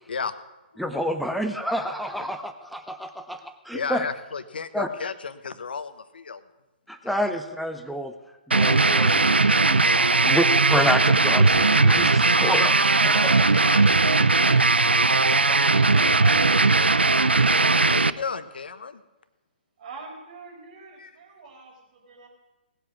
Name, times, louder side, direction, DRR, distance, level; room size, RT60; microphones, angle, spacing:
voice 1, 0.8-4.1 4.7-4.9 6.9-8.1 8.5-9.3 9.6-13.5, equal, ahead, 7 dB, 0.8 m, -29 dB
voice 2, 3.7-6.4 9.8-10.3 13.2-14.3 17.8-19.0 21.0-21.1, left 5 dB, 65° left, 12 dB, 1.1 m, -34 dB
sound 1, 8.5-18.1, right 3 dB, 85° right, 0.5 m, -19 dB
voice 3, 15.7-16.8 19.8-22.3, right 5 dB, 50° right, 1 dB, 4.6 m, -43 dB
18.0 x 8.0 x 6.1 m, 1.0 s
figure-of-eight pair, 130°, 6 cm